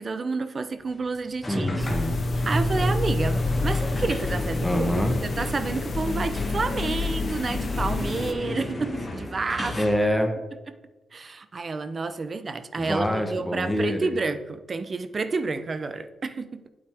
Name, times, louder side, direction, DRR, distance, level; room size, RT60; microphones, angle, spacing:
voice 1, 0.0-1.8 2.5-4.8 5.2-9.8 11.1-16.7, right 4 dB, 35° right, 11 dB, 0.6 m, -30 dB
sound 1, 1.4-10.0, left 1 dB, 25° left, 1.9 m, -30 dB
voice 2, 1.5-2.2 4.6-5.2 9.8-10.3 12.8-14.1, equal, ahead, 5 dB, 1.0 m, -25 dB
sound 2, 1.8-8.3, left 5 dB, 40° left, 0.5 m, -31 dB
8.8 x 7.8 x 3.4 m, 1.1 s
wide cardioid pair, 140°, 0 cm